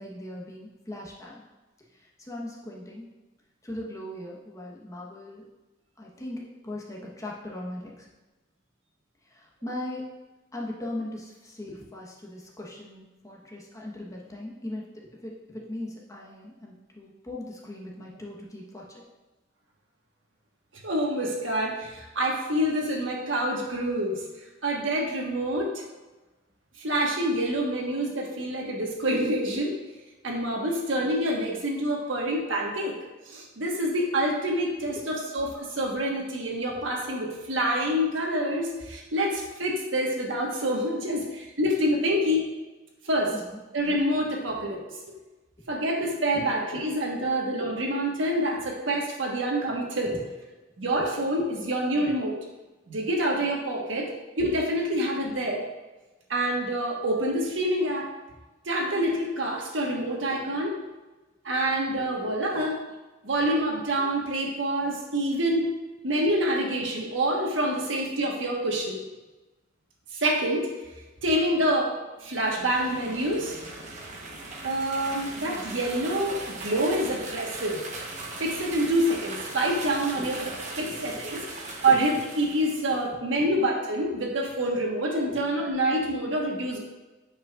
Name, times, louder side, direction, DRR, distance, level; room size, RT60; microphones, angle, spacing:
voice 1, 0.0-1.4 2.2-3.1 3.6-5.4 6.0-8.1 9.3-10.0 10.5-19.0 34.9-35.0 43.3-43.6 50.0-50.2 51.6-51.7 62.5-62.7 73.9-74.0 80.2-80.3 80.9-81.0 81.9-82.0 85.3-85.4, left 1 dB, 15° left, -3 dB, 1.2 m, -39 dB
voice 2, 20.8-24.2 24.6-25.7 26.8-29.7 30.2-33.0 33.3-42.4 43.1-43.3 43.7-44.8 45.7-50.1 50.8-52.4 52.9-54.1 54.4-55.6 56.3-58.1 58.6-60.7 61.4-62.8 63.2-65.7 66.0-69.0 70.1-70.7 71.2-71.9 72.2-73.6 74.6-77.8 78.4-80.4 80.8-86.8, right 1 dB, 85° right, -1 dB, 1.4 m, -27 dB
sound 1, 72.2-83.0, right 2 dB, 40° right, 1.1 m, -39 dB
9.0 x 5.4 x 2.5 m, 1.1 s
head